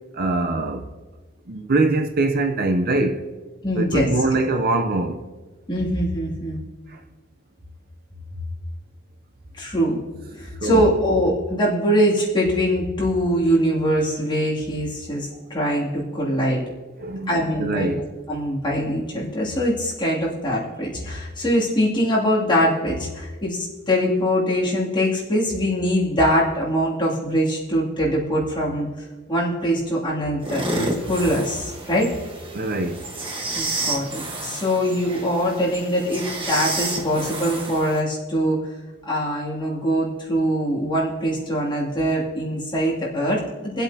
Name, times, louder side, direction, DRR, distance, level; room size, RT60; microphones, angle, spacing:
voice 1, 0.1-0.9 1.5-3.2 3.8-5.2 6.9-7.0 10.6-10.9 17.0-18.1 32.5-33.0, right 2 dB, 45° right, 0.8 m, -23 dB
voice 2, 3.6-4.1 5.7-6.6 9.6-10.0 10.3-16.6 17.3-17.9 18.3-28.9 29.3-32.1 33.5-38.6 39.0-43.8, equal, 20° left, 2.8 m, -23 dB
sound 1, 30.4-38.0, right 2 dB, 25° right, 1.4 m, -30 dB
23.5 x 8.0 x 2.9 m
head